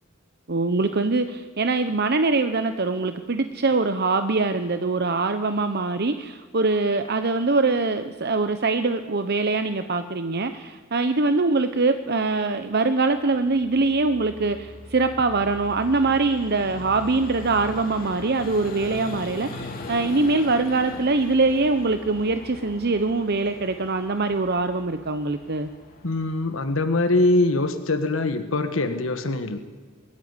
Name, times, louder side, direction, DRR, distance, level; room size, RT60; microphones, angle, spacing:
voice 1, 0.5-25.7, right 3 dB, 50° right, 9 dB, 0.9 m, -23 dB
Vehicle, 12.8-27.5, left 2 dB, 45° left, 3.0 m, -40 dB
voice 2, 26.0-29.6, left 2 dB, 80° left, 8 dB, 1.4 m, -23 dB
22.5 x 13.5 x 9.8 m, 1.5 s
head